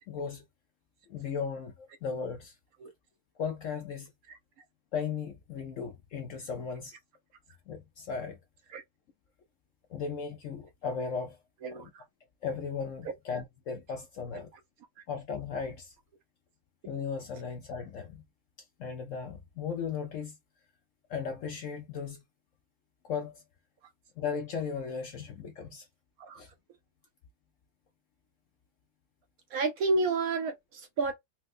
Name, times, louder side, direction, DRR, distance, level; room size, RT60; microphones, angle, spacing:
voice 1, 0.1-0.4 1.1-2.6 3.4-4.1 4.9-7.0 7.7-8.4 9.9-11.4 11.7-11.9 12.4-14.5 15.1-15.9 16.8-18.2 18.8-20.4 21.1-22.2 23.0-23.4 24.2-25.9 26.3-26.5, left 6 dB, 65° left, 0.8 m, -36 dB
voice 2, 11.6-12.0 26.2-26.4 29.5-31.1, right 3 dB, 70° right, 0.9 m, -30 dB
4.4 x 2.1 x 2.4 m
omnidirectional pair, 1.8 m